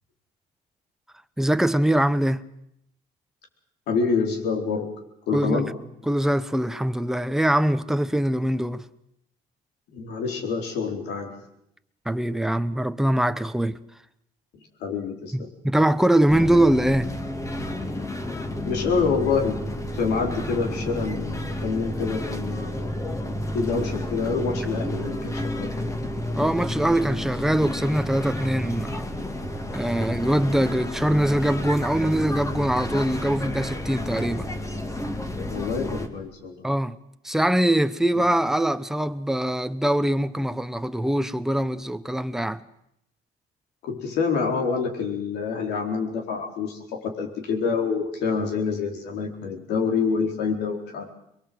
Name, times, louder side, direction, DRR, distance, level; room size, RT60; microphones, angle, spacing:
voice 1, 1.4-2.4 5.3-5.6 6.1-8.8 12.1-13.8 15.3-17.1 26.4-29.1 29.7-34.5 36.6-37.0 37.2-42.6, right 1 dB, ahead, 0.9 m, -23 dB
voice 2, 3.9-4.9 5.3-5.7 9.9-11.3 14.8-15.5 18.6-19.6 19.9-23.2 23.5-25.7 35.5-36.7 38.1-38.2 43.8-51.1, left 5 dB, 80° left, 4.4 m, -27 dB
sound 1, 16.3-36.1, left 1 dB, 20° left, 2.5 m, -31 dB
23.0 x 22.5 x 7.8 m
cardioid pair, 110°, 17 cm